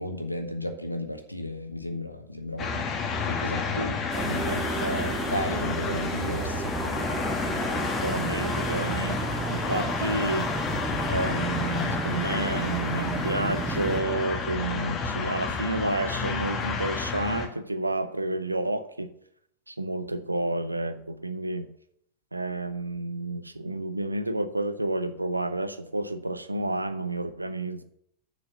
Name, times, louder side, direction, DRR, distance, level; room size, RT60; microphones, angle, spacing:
voice 1, 0.0-2.9 3.2-6.7, left 1 dB, 85° left, 7 dB, 1.1 m, -34 dB
sound 1, 2.6-17.5, left 4 dB, 30° left, 1.5 m, -30 dB
sound 2, 4.1-14.0, right 5 dB, 20° right, 0.9 m, -33 dB
voice 2, 4.5-5.2 8.0-10.5 11.1-19.1 19.7-21.7 22.3-27.8, right 2 dB, 85° right, 11 dB, 0.7 m, -30 dB
7.0 x 6.7 x 7.5 m, 0.72 s
figure-of-eight pair, 90°, 0 cm